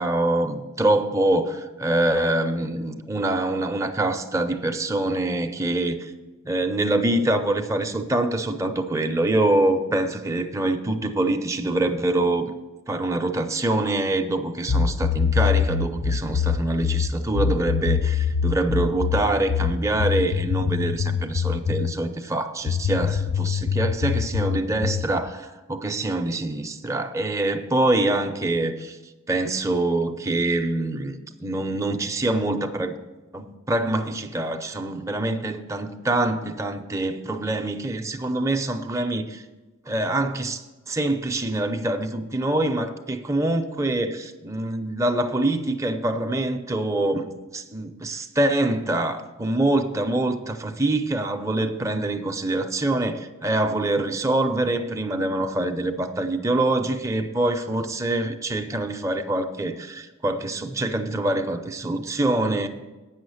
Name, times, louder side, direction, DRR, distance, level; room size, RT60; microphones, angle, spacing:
voice 1, 0.0-6.1 6.5-12.5 12.9-29.0 29.3-33.0 33.3-39.4 39.9-40.6 40.9-62.7, right 2 dB, 15° right, 5 dB, 0.6 m, -25 dB
sound 1, 14.7-22.0 22.7-25.1, left 6 dB, 50° left, 0.3 m, -24 dB
9.0 x 6.4 x 7.8 m, 1.2 s
head